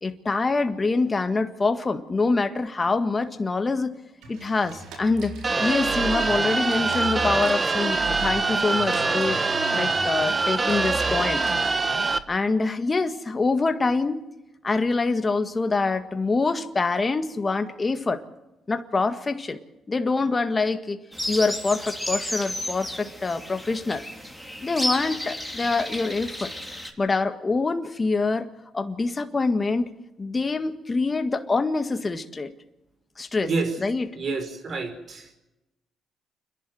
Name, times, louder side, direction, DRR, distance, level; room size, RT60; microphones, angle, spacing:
voice 1, 0.0-3.9 4.3-9.4 9.7-11.4 12.3-14.2 14.6-18.2 18.7-19.6 19.9-21.0 21.3-24.0 24.6-26.5 27.0-28.5 28.7-29.9 30.2-32.5 33.2-33.5 33.8-34.1, left 3 dB, 30° left, 8 dB, 1.8 m, -25 dB
sound 1, 4.2-12.2, right 4 dB, 85° right, 4.3 m, -39 dB
sound 2, 5.4-12.2, right 3 dB, 30° right, 1.2 m, -24 dB
sound 3, 21.1-26.9, left 1 dB, ahead, 3.6 m, -32 dB
voice 2, 33.4-33.7 34.1-35.4, right 4 dB, 50° right, 7 dB, 5.0 m, -28 dB
30.0 x 11.0 x 7.8 m, 0.97 s
cardioid pair, 90°, 0 cm